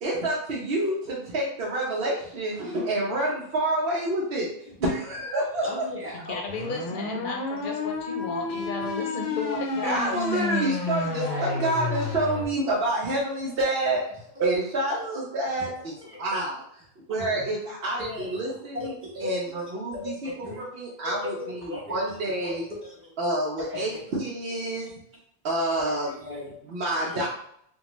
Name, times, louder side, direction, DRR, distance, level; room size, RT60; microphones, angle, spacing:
voice 1, 0.0-4.5 4.8-5.6 9.8-14.0 14.4-15.9 16.2-16.6 17.1-22.6 23.2-24.9 25.4-26.1 26.7-27.3, right 1 dB, 75° right, -4 dB, 0.9 m, -28 dB
voice 2, 5.6-6.4 8.8-9.2 10.3-11.9 12.1-12.3 14.9-15.0 15.6-15.7 16.0-16.4 17.2-17.5 18.0-18.4 18.7-19.3 19.6-20.6 21.0-22.0 22.2-23.1 23.6-24.0 24.8-24.9 26.1-26.5 27.1-27.3, left 2 dB, 15° right, -7 dB, 1.0 m, -38 dB
voice 3, 6.1-10.7, left 4 dB, 60° left, 2 dB, 0.8 m, -34 dB
sound 1, 6.5-12.4, left 3 dB, 90° left, 0.9 m, -30 dB
3.5 x 2.2 x 3.0 m, 0.68 s
omnidirectional pair, 1.0 m